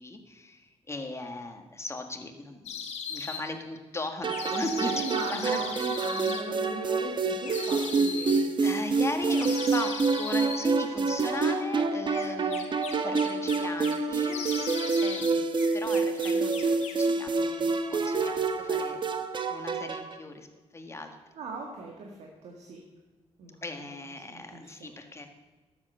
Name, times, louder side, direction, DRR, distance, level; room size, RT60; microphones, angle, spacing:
voice 1, 0.0-4.9 5.3-5.6 8.6-14.5 15.0-19.0 19.5-20.5 20.7-21.2 23.6-25.3, left 2 dB, 25° left, 5 dB, 1.6 m, -38 dB
sound 1, 2.7-3.4 4.3-6.4 7.4-8.4 9.3-10.7 12.1-14.0 14.3-15.3 15.6-17.1, left 6 dB, 90° left, 1.4 m, -38 dB
sound 2, 4.2-20.2, right 4 dB, 45° right, 1.0 m, -27 dB
voice 2, 4.7-8.4 21.3-22.8 23.4-24.0 24.3-24.9, right 3 dB, 85° right, 1 dB, 1.6 m, -39 dB
12.0 x 7.9 x 6.6 m, 1.2 s
cardioid pair, 85°, 11 cm